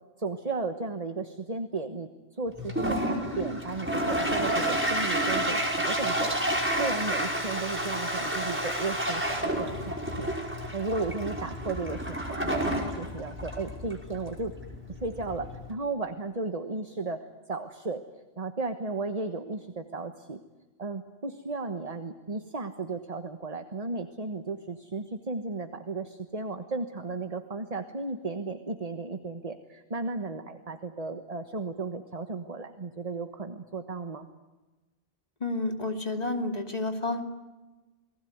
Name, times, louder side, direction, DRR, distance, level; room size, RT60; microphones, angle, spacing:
voice 1, 0.2-2.1 2.4-14.5 15.0-18.0 18.4-20.4 20.8-34.3, right 3 dB, 40° right, 7 dB, 1.5 m, -35 dB
Toilet flush, 2.6-15.7, right 1 dB, 10° right, 5.3 m, -30 dB
voice 2, 35.4-37.2, left 2 dB, 40° left, 4 dB, 2.9 m, -30 dB
29.5 x 20.0 x 9.5 m, 1.2 s
omnidirectional pair, 1.0 m